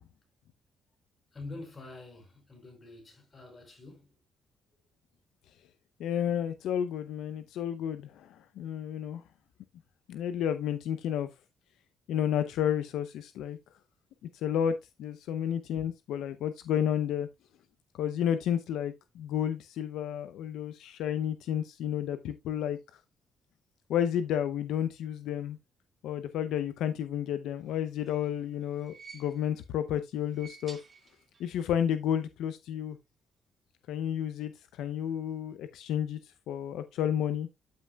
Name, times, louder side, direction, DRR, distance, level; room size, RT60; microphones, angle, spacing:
voice 1, 1.3-4.1, left 2 dB, 30° left, 5.7 m, -46 dB
voice 2, 6.0-9.2 10.1-11.3 12.1-13.6 14.3-17.3 18.0-22.8 23.9-25.6 26.0-30.8 31.4-33.0 33.9-37.5, left 9 dB, 85° left, 0.6 m, -31 dB
sound 1, 27.8-29.7 30.2-31.6 31.8-31.9 33.1-33.2, right 5 dB, 40° right, 2.0 m, -53 dB
12.5 x 5.6 x 2.3 m
cardioid pair, 90°, 0 cm